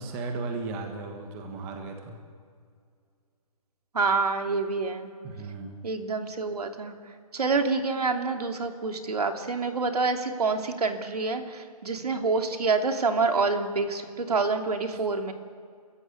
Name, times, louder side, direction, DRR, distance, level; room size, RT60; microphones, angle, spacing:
voice 1, 0.0-2.2 5.2-5.8 14.9-15.0, right 3 dB, 10° right, 3 dB, 1.4 m, -36 dB
voice 2, 3.9-5.1 5.8-6.9 7.3-15.3, right 4 dB, 75° right, 5 dB, 3.0 m, -27 dB
29.5 x 14.5 x 8.5 m, 2.2 s
hypercardioid pair, 175°, 20 cm